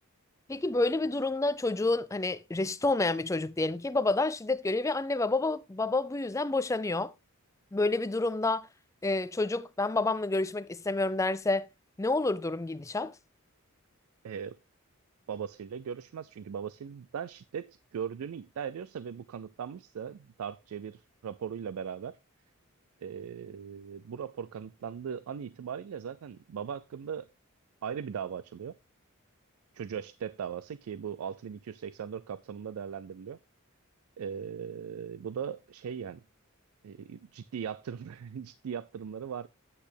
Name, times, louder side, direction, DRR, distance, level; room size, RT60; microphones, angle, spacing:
voice 1, 0.5-7.1 7.7-8.7 9.0-11.7 12.0-13.1, left 2 dB, 15° left, 0.4 m, -29 dB
voice 2, 14.2-14.6 15.3-22.2 23.0-27.3 27.8-28.8 29.7-33.4 34.2-36.2 36.8-39.5, right 7 dB, 85° right, 0.4 m, -39 dB
8.5 x 8.1 x 3.3 m
head